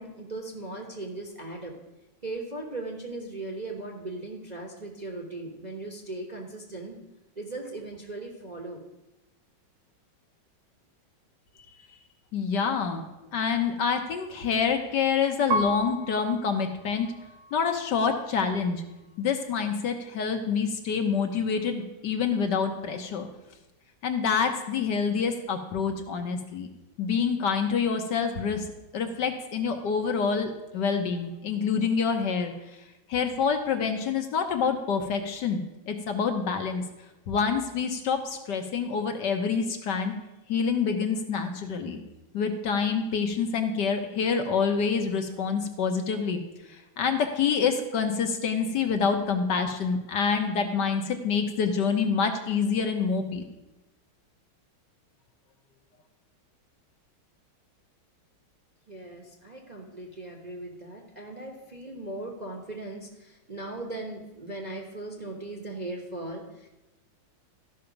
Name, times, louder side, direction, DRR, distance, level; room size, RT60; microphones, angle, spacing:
voice 1, 0.0-1.7 2.2-7.0 7.4-8.8 58.9-66.7, right 2 dB, 30° right, 1 dB, 0.8 m, -38 dB
voice 2, 12.3-13.0 13.3-17.1 17.5-18.8 19.2-23.3 24.0-26.7 27.0-28.7 28.9-32.5 33.1-36.8 37.3-40.1 40.5-42.0 42.3-46.4 46.7-53.4, left 6 dB, 65° left, 5 dB, 1.3 m, -27 dB
Piano, 15.5-18.3 18.9-19.6, right 1 dB, 60° right, 0.8 m, -34 dB
13.5 x 5.8 x 5.1 m, 1.0 s
omnidirectional pair, 2.2 m